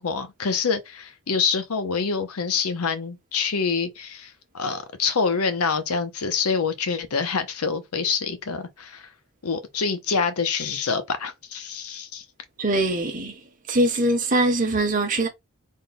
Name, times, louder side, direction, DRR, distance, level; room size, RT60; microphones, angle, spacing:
voice 1, 0.0-9.1 9.4-12.2, left 5 dB, 85° left, 0.7 m, -26 dB
voice 2, 12.6-13.4 13.7-15.3, right 1 dB, 35° right, 0.9 m, -22 dB
3.6 x 2.2 x 4.1 m
head